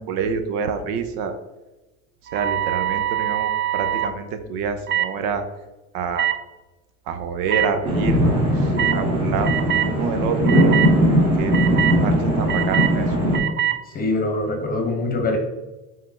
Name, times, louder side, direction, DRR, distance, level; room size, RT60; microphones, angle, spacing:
voice 1, 0.0-1.3 2.3-5.4 5.9-6.3 7.1-10.8 11.4-11.5 12.0-13.2, right 5 dB, 75° right, 8 dB, 0.9 m, -27 dB
sound 1, 2.3-4.1 4.9-5.1 6.1-6.3 7.5-7.6 8.8-9.0 9.4-9.9 10.5-10.9 11.5-12.0 12.5-12.9 13.3-13.8, right 11 dB, 30° right, 0.4 m, -23 dB
sound 2, 7.8-13.4, equal, 15° right, 2.3 m, -19 dB
voice 2, 13.9-15.4, left 2 dB, 25° left, 3 dB, 1.2 m, -23 dB
7.9 x 3.7 x 3.7 m, 1.1 s
cardioid pair, 150°, 36 cm